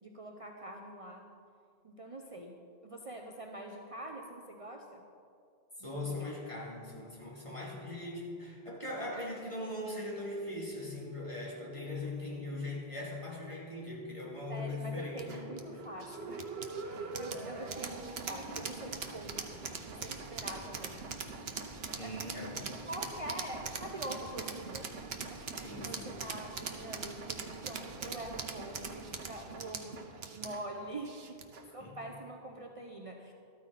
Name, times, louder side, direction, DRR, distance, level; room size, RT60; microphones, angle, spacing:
voice 1, 0.0-1.3 1.8-5.0 5.8-6.3 14.5-21.1 22.0-22.3 22.9-24.9 25.9-30.0 30.3-31.4 31.7-33.3, right 1 dB, 35° right, 1 dB, 0.8 m, -44 dB
voice 2, 5.8-15.5 17.3-17.4 22.0-22.7 25.6-26.2 31.8-32.0, left 2 dB, 30° left, -4 dB, 2.6 m, -40 dB
sound 1, 15.2-31.7, right 4 dB, 75° right, 1.2 m, -42 dB
13.5 x 13.5 x 4.1 m, 2.4 s
omnidirectional pair, 1.0 m